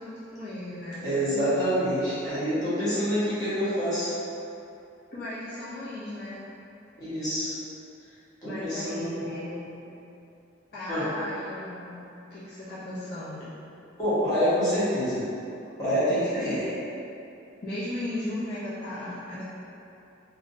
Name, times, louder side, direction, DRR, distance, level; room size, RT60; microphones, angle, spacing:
voice 1, 0.0-1.1 2.9-3.1 5.1-6.4 8.4-9.9 10.7-13.5 16.3-16.6 17.6-19.4, left 1 dB, 55° left, -12 dB, 0.7 m, -36 dB
voice 2, 1.0-4.1 7.0-7.5 8.4-9.4 10.9-11.1 14.0-15.2 15.8-16.8, equal, 20° left, -13 dB, 1.2 m, -26 dB
3.5 x 2.7 x 2.7 m, 2.7 s
head